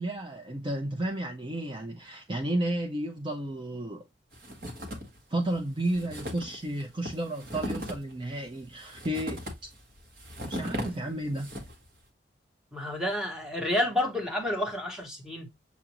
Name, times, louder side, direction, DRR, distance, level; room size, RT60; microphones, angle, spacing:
voice 1, 0.0-4.0 4.6-4.7 5.3-9.7 10.5-11.5, right 1 dB, 25° right, 0.5 m, -32 dB
sound 1, 4.3-5.2 5.5-5.6 5.8-11.9, equal, 55° right, 1.5 m, -38 dB
voice 2, 12.7-15.5, left 1 dB, 5° right, 1.1 m, -30 dB
7.0 x 2.5 x 2.9 m
head